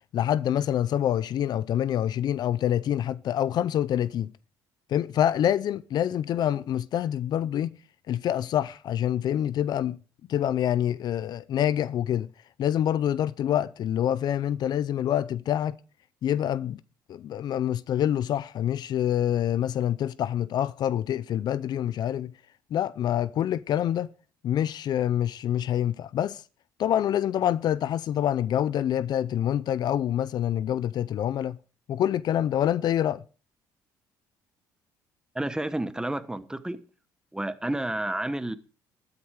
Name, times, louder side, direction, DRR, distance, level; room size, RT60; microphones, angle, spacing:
voice 1, 0.1-4.3 4.9-7.8 8.1-10.0 10.3-12.3 12.6-15.8 16.2-16.8 17.1-22.3 22.7-24.1 24.4-26.4 26.8-31.6 31.9-33.2, left 10 dB, 60° left, 0.5 m, -26 dB
voice 2, 35.3-36.8 37.3-38.6, right 1 dB, 10° right, 1.1 m, -30 dB
12.5 x 9.8 x 4.8 m
cardioid pair, 90°, 8 cm